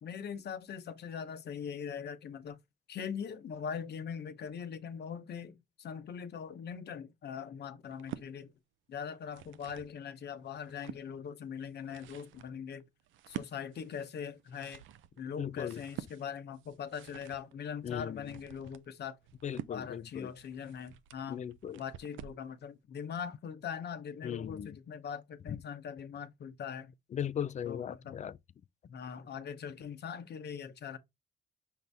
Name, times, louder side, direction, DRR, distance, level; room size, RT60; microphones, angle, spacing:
voice 1, 0.0-2.6 2.9-8.5 8.9-12.8 13.3-14.8 15.2-19.2 19.7-21.4 21.8-26.9 27.7-28.2 28.9-31.0, left 7 dB, 55° left, 0.8 m, -41 dB
sound 1, 7.8-8.3 9.1-9.9 10.4-11.0 11.6-22.5, right 12 dB, 75° right, 0.5 m, -48 dB
voice 2, 15.4-15.8 17.8-18.3 19.4-20.3 21.3-21.8 24.2-24.8 27.1-28.4, left 9 dB, 35° left, 0.4 m, -38 dB
5.8 x 2.6 x 3.4 m
cardioid pair, 90°, 20 cm